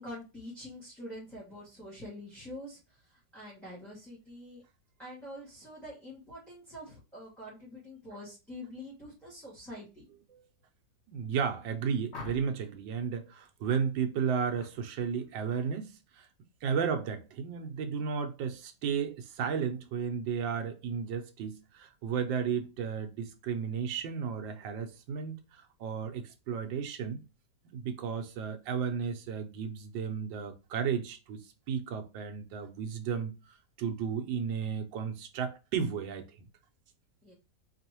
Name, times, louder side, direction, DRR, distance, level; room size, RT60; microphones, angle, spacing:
voice 1, 0.0-2.8 3.1-4.6 5.0-10.1 37.2-37.3, left 1 dB, ahead, 1.9 m, -45 dB
voice 2, 11.1-16.3 16.6-27.2 27.7-33.3 33.8-36.3, right 7 dB, 80° right, 1.5 m, -33 dB
sound 1, 12.1-12.7 14.5-14.8 15.1-15.5, left 4 dB, 40° left, 1.3 m, -46 dB
4.0 x 3.4 x 2.9 m
omnidirectional pair, 2.0 m